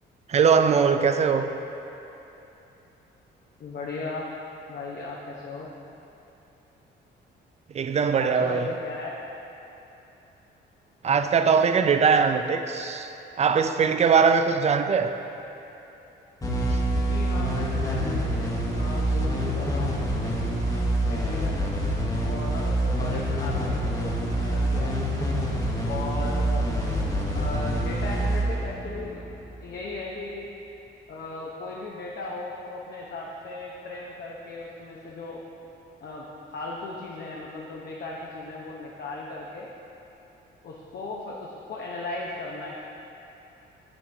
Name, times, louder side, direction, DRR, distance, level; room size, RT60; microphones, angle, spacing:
voice 1, 0.3-1.5 7.7-8.7 11.0-15.2 16.7-16.8, right 6 dB, 35° right, 8 dB, 0.4 m, -21 dB
voice 2, 3.6-4.3 4.7-5.7 8.2-9.2 16.9-18.5 18.7-20.4 21.1-21.6 22.2-25.0 25.8-26.7 27.3-29.2 29.6-30.5 31.1-35.4 36.0-39.7 40.6-42.8, left 3 dB, 55° left, -3 dB, 0.8 m, -36 dB
sound 1, 16.4-29.7, right 1 dB, 20° left, 1.1 m, -26 dB
7.0 x 6.9 x 3.4 m, 3.0 s
cardioid pair, 90°, 20 cm